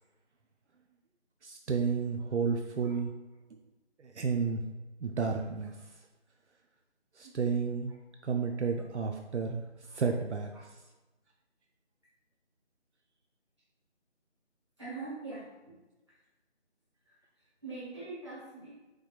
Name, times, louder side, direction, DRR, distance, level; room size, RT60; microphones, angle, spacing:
voice 1, 1.4-3.1 3.5-3.6 4.0-4.7 5.0-5.7 7.2-7.9 8.2-9.6 9.9-10.5, right 5 dB, 75° right, 4 dB, 0.5 m, -31 dB
voice 2, 14.8-15.7 17.0-18.7, right 3 dB, 25° right, -10 dB, 1.4 m, -44 dB
4.9 x 3.4 x 2.4 m, 1.1 s
figure-of-eight pair, 175°, 35 cm